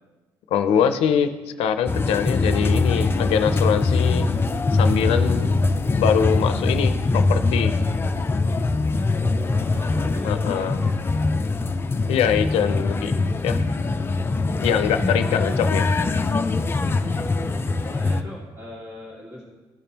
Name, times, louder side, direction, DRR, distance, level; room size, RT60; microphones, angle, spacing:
voice 1, 0.5-1.3 1.6-4.3 4.7-5.6 6.0-7.8 10.2-10.8 12.1-13.1 13.4-13.6 14.6-15.9, left 8 dB, 85° left, 9 dB, 0.5 m, -23 dB
sound 1, 1.9-18.2, left 3 dB, 25° left, 0.4 m, -22 dB
voice 2, 9.1-11.5 15.1-15.5 17.0-19.5, equal, 30° right, -6 dB, 1.6 m, -41 dB
14.5 x 5.3 x 2.9 m, 1.2 s
cardioid pair, 105°, 10 cm